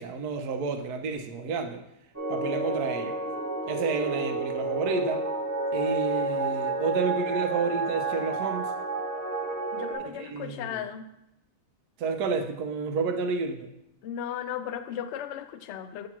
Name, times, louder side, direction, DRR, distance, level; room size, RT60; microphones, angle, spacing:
voice 1, 0.0-1.8 2.3-3.2 3.7-5.2 5.7-8.7 10.1-10.8 12.0-13.7, right 4 dB, 80° right, 5 dB, 1.2 m, -30 dB
sound 1, 2.1-9.9, right 3 dB, 10° right, 0.9 m, -30 dB
voice 2, 9.7-11.1 14.0-16.1, left 9 dB, 75° left, 10 dB, 0.6 m, -36 dB
7.4 x 2.9 x 5.8 m, 0.82 s
omnidirectional pair, 1.7 m